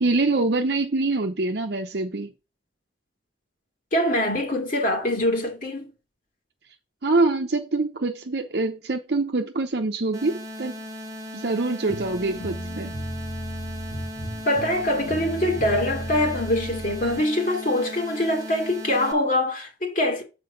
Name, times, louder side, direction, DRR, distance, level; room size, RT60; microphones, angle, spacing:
voice 1, 0.0-2.3 7.0-10.7 11.3-12.9, right 3 dB, 65° right, 0.8 m, -25 dB
voice 2, 3.9-5.9 14.4-20.2, left 1 dB, 45° left, 2.3 m, -24 dB
sound 1, 10.1-19.1, left 1 dB, 20° right, 1.1 m, -38 dB
sound 2, 11.9-17.2, equal, 75° left, 2.9 m, -35 dB
7.7 x 4.7 x 5.5 m
head